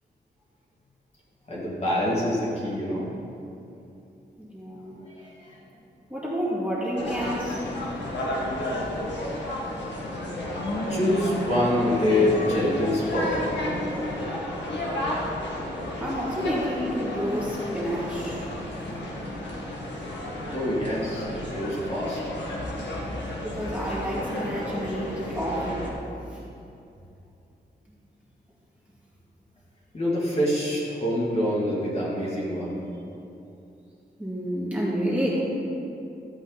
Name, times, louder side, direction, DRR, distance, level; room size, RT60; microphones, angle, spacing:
voice 1, 1.5-3.1 5.2-5.5 10.9-13.4 15.9-16.0 20.5-22.2 29.9-32.8, left 1 dB, 35° left, -7 dB, 2.2 m, -25 dB
voice 2, 4.4-5.0 6.1-7.6 16.0-18.5 21.3-21.4 22.6-22.7 23.4-25.8 26.3-26.4 34.2-35.4, equal, 10° right, -8 dB, 2.3 m, -29 dB
sound 1, 7.0-25.9, left 1 dB, 85° left, 1.8 m, -32 dB
14.0 x 8.1 x 4.0 m, 2.8 s
wide cardioid pair, 170°, 18 cm